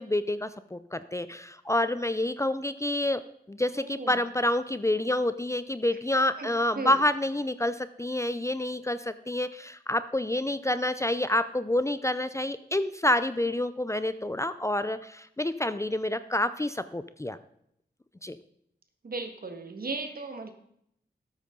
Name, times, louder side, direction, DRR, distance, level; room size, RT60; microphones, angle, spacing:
voice 1, 0.0-3.2 3.5-17.4 18.2-18.4, left 1 dB, 15° left, 13 dB, 0.6 m, -28 dB
voice 2, 3.7-4.2 6.4-7.0 19.0-20.5, right 3 dB, 60° right, 6 dB, 1.8 m, -36 dB
12.5 x 8.5 x 3.9 m, 0.73 s
cardioid pair, 55°, 18 cm